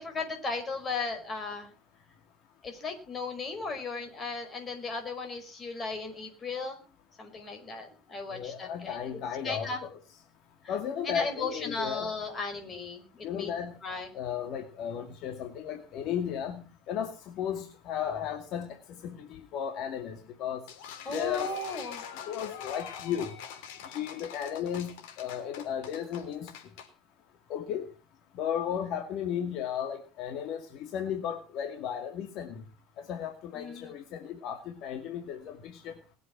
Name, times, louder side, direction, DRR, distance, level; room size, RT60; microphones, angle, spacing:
voice 1, 0.0-1.7 2.6-6.8 7.2-9.2 9.4-9.8 10.6-10.7 11.0-13.5 13.8-14.1 21.0-22.0 33.5-33.9, left 3 dB, 30° left, 5 dB, 5.1 m, -36 dB
voice 2, 8.3-9.9 10.7-12.1 13.2-13.8 14.1-18.8 19.0-20.6 21.1-21.5 22.3-23.3 23.9-26.5 27.5-27.9 28.4-30.6 30.9-32.6 33.1-35.9, left 8 dB, 60° left, 5 dB, 2.3 m, -34 dB
sound 1, 20.7-26.9, left 8 dB, 85° left, 3.8 m, -44 dB
20.5 x 8.1 x 6.0 m, 0.35 s
cardioid pair, 125°, 0 cm